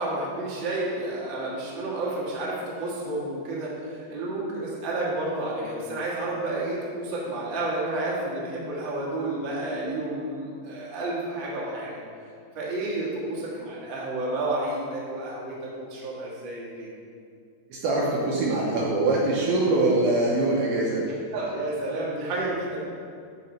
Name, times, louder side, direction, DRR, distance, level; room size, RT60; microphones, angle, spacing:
voice 1, 0.0-12.0 12.5-16.9 21.3-22.8, right 2 dB, 50° right, -6 dB, 1.4 m, -30 dB
voice 2, 17.7-21.0, right 2 dB, 75° right, -3 dB, 2.3 m, -23 dB
12.5 x 4.2 x 4.3 m, 2.3 s
omnidirectional pair, 5.0 m